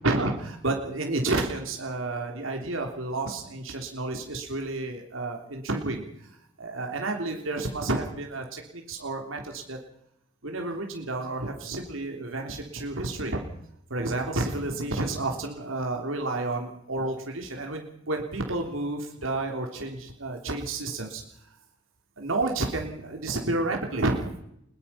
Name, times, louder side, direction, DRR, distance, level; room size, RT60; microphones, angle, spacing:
voice 1, 0.0-6.3 6.6-9.8 10.4-13.4 13.9-21.2 22.2-24.3, right 2 dB, 80° right, 2 dB, 3.3 m, -30 dB
22.0 x 21.5 x 5.7 m, 0.74 s
head